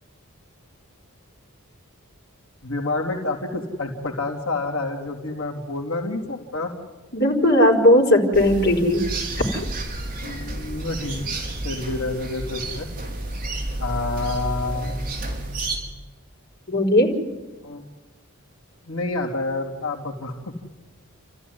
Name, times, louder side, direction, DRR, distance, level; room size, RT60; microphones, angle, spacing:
voice 1, 2.6-6.7 10.2-11.3 11.6-12.9 13.8-15.0 17.6-17.8 18.9-20.5, left 2 dB, 75° left, 2 dB, 3.0 m, -28 dB
voice 2, 7.1-9.0 9.4-9.6 16.7-17.1, left 1 dB, 50° left, 0 dB, 4.7 m, -17 dB
sound 1, 8.3-15.8, right 2 dB, 40° right, 4.9 m, -30 dB
30.0 x 14.5 x 9.6 m, 1.2 s
head